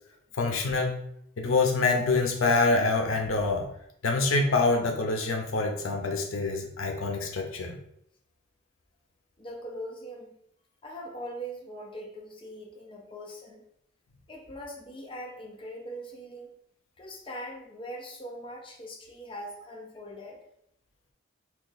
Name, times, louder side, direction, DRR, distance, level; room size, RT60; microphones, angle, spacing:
voice 1, 0.3-1.0 1.4-3.7 4.0-7.7, left 3 dB, 90° left, 2 dB, 0.6 m, -26 dB
voice 2, 9.4-10.4 10.8-13.7 14.3-16.5 17.0-20.4, equal, 25° left, -2 dB, 0.6 m, -41 dB
2.9 x 2.4 x 3.8 m, 0.72 s
head